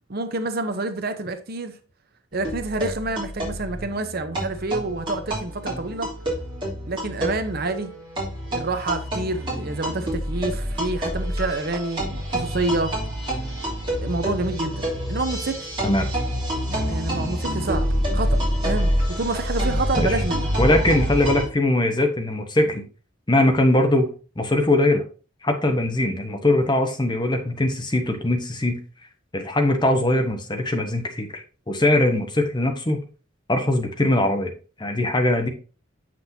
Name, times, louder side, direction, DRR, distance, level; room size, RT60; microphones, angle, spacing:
voice 1, 0.1-1.7 2.3-6.1 6.9-7.9 8.5-13.0 14.0-15.6 16.7-20.5, right 2 dB, 50° right, 0.7 m, -28 dB
sound 1, 2.3-21.4, equal, 25° right, 3.1 m, -27 dB
voice 2, 20.6-22.8 23.3-24.1 24.4-25.0 25.4-28.8 29.3-31.4 31.7-33.0 33.5-34.5 34.8-35.5, left 1 dB, 20° left, 0.9 m, -21 dB
7.5 x 6.0 x 2.7 m
head